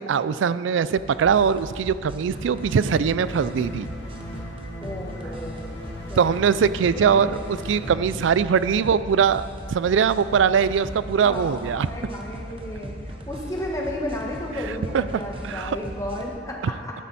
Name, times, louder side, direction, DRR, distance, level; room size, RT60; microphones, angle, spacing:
voice 1, 0.1-3.9 6.2-11.9 14.9-15.0 15.4-15.8, right 6 dB, 90° right, 16 dB, 0.3 m, -21 dB
sound 1, 1.0-16.3, right 1 dB, 30° right, 0.9 m, -38 dB
sound 2, 2.3-7.9, equal, 70° left, 3.0 m, -38 dB
voice 2, 4.8-5.8 6.1-6.2 6.9-7.2 11.2-16.9, left 1 dB, 15° left, -2 dB, 1.4 m, -33 dB
12.0 x 9.3 x 4.1 m, 2.3 s
head